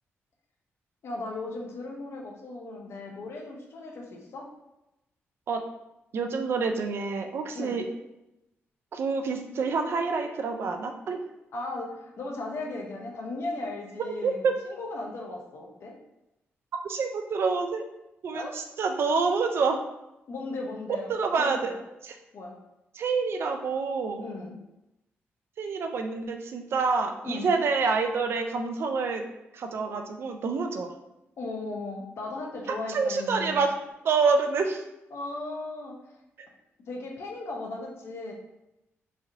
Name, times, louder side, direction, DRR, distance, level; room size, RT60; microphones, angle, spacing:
voice 1, 1.0-4.5 7.5-7.8 11.5-15.9 18.3-18.6 20.3-21.8 22.3-22.6 24.2-24.6 27.2-27.5 31.4-33.7 35.1-35.9 36.9-38.3, left 2 dB, 65° left, 0 dB, 0.6 m, -37 dB
voice 2, 6.1-7.8 8.9-11.2 14.2-14.5 16.8-17.8 18.2-19.8 21.1-21.7 22.0-22.1 23.0-24.3 25.6-29.2 29.5-30.9 32.9-33.7 34.0-34.8, right 4 dB, 60° right, 5 dB, 0.4 m, -27 dB
3.1 x 2.6 x 2.5 m, 0.92 s
wide cardioid pair, 135°, 5 cm